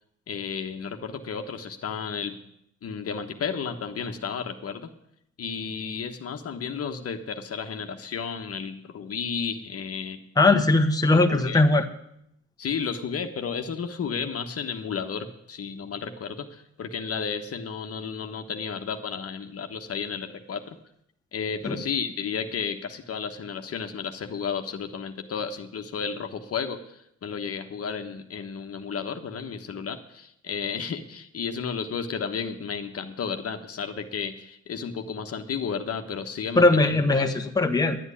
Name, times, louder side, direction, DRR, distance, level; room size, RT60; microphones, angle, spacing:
voice 1, 0.3-2.3 2.8-4.9 5.4-10.2 11.1-11.6 12.6-20.8 21.3-37.4, left 6 dB, 50° left, 6 dB, 1.2 m, -33 dB
voice 2, 10.4-11.8 21.6-21.8 36.5-38.0, left 2 dB, 10° left, 4 dB, 1.2 m, -20 dB
11.0 x 8.1 x 9.8 m, 0.76 s
cardioid pair, 90°, 30 cm